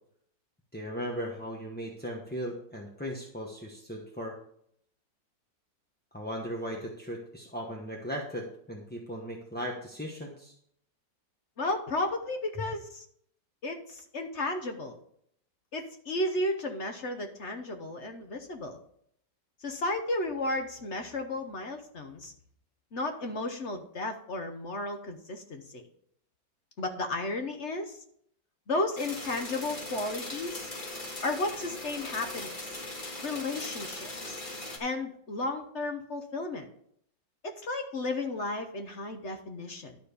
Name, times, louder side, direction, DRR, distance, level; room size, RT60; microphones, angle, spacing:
voice 1, 0.7-4.3 6.1-10.5, equal, 10° left, -2 dB, 0.8 m, -37 dB
voice 2, 11.6-13.1 13.6-15.0 15.7-18.8 19.6-22.3 22.9-25.9 26.8-28.0 28.7-30.7 31.2-32.8 33.2-34.4 34.8-36.7 37.4-40.0, left 2 dB, 50° left, 5 dB, 1.0 m, -33 dB
sound 1, 29.0-34.8, left 2 dB, 25° left, 2.0 m, -39 dB
12.0 x 4.3 x 6.8 m, 0.67 s
omnidirectional pair, 2.0 m